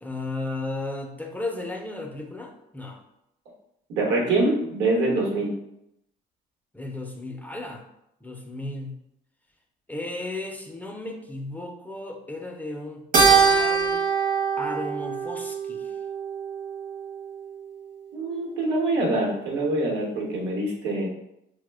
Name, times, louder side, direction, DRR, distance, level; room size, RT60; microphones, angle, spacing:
voice 1, 0.0-3.0 6.7-7.8 8.2-9.0 9.9-14.0 14.6-15.9, left 2 dB, 10° left, 2 dB, 0.3 m, -34 dB
voice 2, 3.9-5.5 18.1-21.1, right 2 dB, 90° right, -1 dB, 0.9 m, -24 dB
Keyboard (musical), 13.1-17.7, right 5 dB, 50° right, 0.7 m, -23 dB
3.0 x 2.0 x 3.3 m, 0.82 s
cardioid pair, 110°, 17 cm